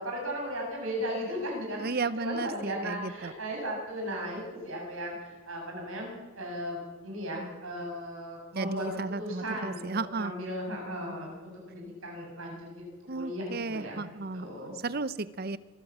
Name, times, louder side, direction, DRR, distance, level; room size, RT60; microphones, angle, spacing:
voice 1, 0.0-12.8 13.1-14.1 14.3-14.7, equal, 70° right, 0 dB, 7.2 m, -36 dB
voice 2, 1.8-3.3 8.6-10.3 13.1-15.6, right 3 dB, 45° right, 16 dB, 0.7 m, -34 dB
25.5 x 14.0 x 7.4 m, 1.3 s
head